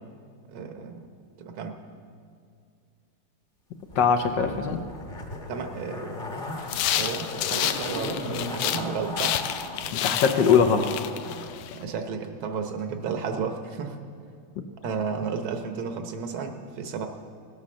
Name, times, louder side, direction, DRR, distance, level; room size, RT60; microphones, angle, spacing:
voice 1, 0.5-1.1 1.4-1.8 5.5-6.2 7.0-9.7 11.7-14.0 14.8-17.1, right 5 dB, 75° right, 6 dB, 1.7 m, -33 dB
voice 2, 3.9-4.8 9.9-10.9, left 6 dB, 65° left, 6 dB, 1.4 m, -21 dB
Zipper (clothing), 3.9-11.5 11.8-11.9, left 2 dB, 30° left, 1.2 m, -37 dB
sound 1, 6.6-8.9 9.2-11.8, left 11 dB, 90° left, 1.5 m, -29 dB
17.0 x 8.7 x 6.3 m, 2.2 s
omnidirectional pair, 2.3 m